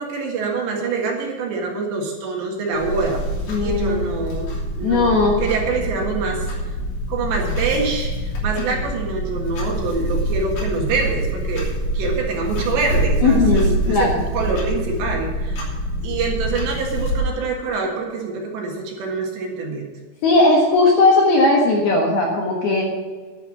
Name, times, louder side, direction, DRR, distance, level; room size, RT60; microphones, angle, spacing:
voice 1, 0.0-3.2 3.6-6.5 7.1-15.7 16.0-19.9, right 4 dB, 65° right, 0 dB, 3.6 m, -25 dB
Clock, 2.7-17.2, right 1 dB, 45° left, 4.2 m, -25 dB
voice 2, 3.5-4.2 4.8-5.4 8.7-8.8 13.2-14.2 20.2-22.8, left 2 dB, 65° left, -1 dB, 2.8 m, -17 dB
11.0 x 9.2 x 6.3 m, 1.3 s
omnidirectional pair, 6.0 m